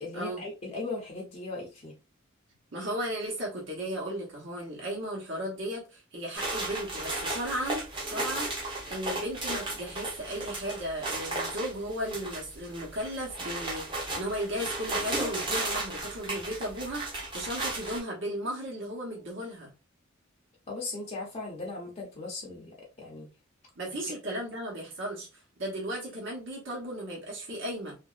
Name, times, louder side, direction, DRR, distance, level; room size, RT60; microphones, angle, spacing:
voice 1, 0.0-1.9 20.7-23.3 23.9-24.0, left 3 dB, 30° left, 0.6 m, -38 dB
voice 2, 2.7-19.7 23.8-25.3 25.6-27.9, equal, 60° right, 1.0 m, -35 dB
sound 1, 6.3-18.0, right 2 dB, 25° right, 0.7 m, -35 dB
3.0 x 2.5 x 2.4 m
head